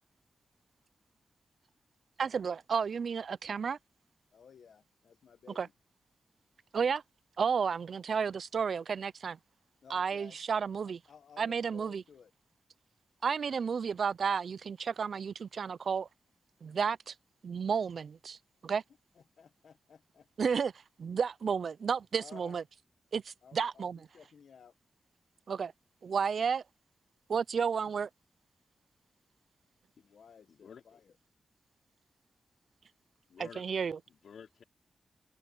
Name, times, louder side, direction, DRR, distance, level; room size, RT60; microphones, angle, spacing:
voice 1, 2.2-3.8 5.6-5.7 6.7-7.0 7.4-9.4 9.9-11.0 11.4-12.0 13.2-16.1 16.6-17.1 17.4-18.4 18.6-18.8 20.4-20.7 21.0-22.6 23.1-24.1 25.5-25.7 26.0-26.6 27.3-28.1 33.6-34.0, right 6 dB, 60° right, 0.4 m, -32 dB
voice 2, 4.3-5.7 9.8-10.4 10.8-12.3 19.1-20.5 22.2-22.6 23.4-23.8 24.1-24.7 30.0-31.0, left 6 dB, 70° left, 1.4 m, -56 dB
voice 3, 30.5-31.0 33.3-33.6 34.1-34.6, left 7 dB, 90° left, 5.0 m, -52 dB
open air
wide cardioid pair, 155°, 0 cm